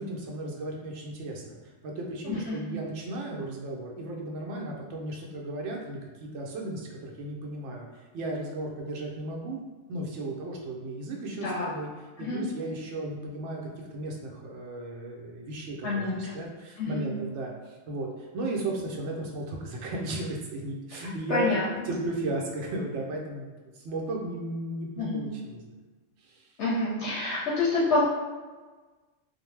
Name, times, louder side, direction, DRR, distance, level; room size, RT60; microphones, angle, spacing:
voice 1, 0.0-9.6 9.9-11.9 12.2-21.5 21.9-25.6 26.2-26.5, right 1 dB, 70° right, 0 dB, 0.8 m, -35 dB
voice 2, 2.2-2.7 11.4-11.7 12.2-12.4 15.8-16.3 16.8-17.2 20.9-21.0 21.3-21.7 25.0-25.2 26.6-28.0, left 2 dB, 65° left, -6 dB, 0.8 m, -28 dB
2.5 x 2.1 x 3.1 m, 1.3 s
omnidirectional pair, 1.4 m